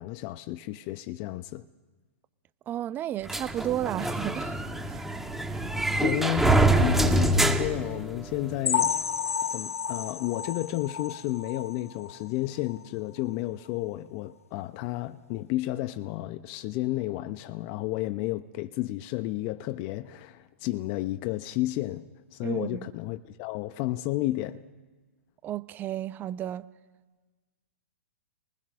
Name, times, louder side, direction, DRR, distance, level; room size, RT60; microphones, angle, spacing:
voice 1, 0.0-1.7 6.0-9.0 9.5-24.6, left 16 dB, 40° left, 0.9 m, -32 dB
voice 2, 2.7-5.4 22.4-22.9 25.4-26.7, right 12 dB, 25° right, 0.9 m, -33 dB
sound 1, 3.3-8.6, right 1 dB, 5° right, 1.9 m, -25 dB
sound 2, 8.6-12.3 12.7-12.8 13.2-13.3 13.8-13.9, left 7 dB, 80° left, 0.8 m, -31 dB
30.0 x 20.0 x 6.4 m
hypercardioid pair, 115°, 8 cm